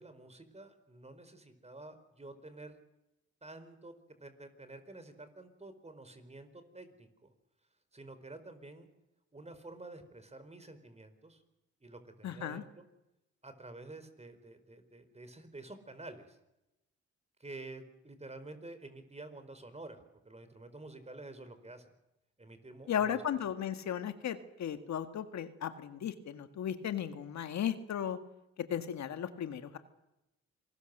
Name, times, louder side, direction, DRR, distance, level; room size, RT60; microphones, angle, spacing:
voice 1, 0.0-2.8 3.4-3.9 4.2-7.3 7.9-8.9 9.3-11.4 11.8-12.8 13.4-16.4 17.4-21.9 22.4-23.2, right 2 dB, 20° right, 10 dB, 4.3 m, -50 dB
voice 2, 12.2-12.6 22.9-28.2 28.7-29.8, left 9 dB, 70° left, 9 dB, 1.8 m, -36 dB
27.5 x 20.0 x 6.7 m, 0.93 s
supercardioid pair, 60°, 29 cm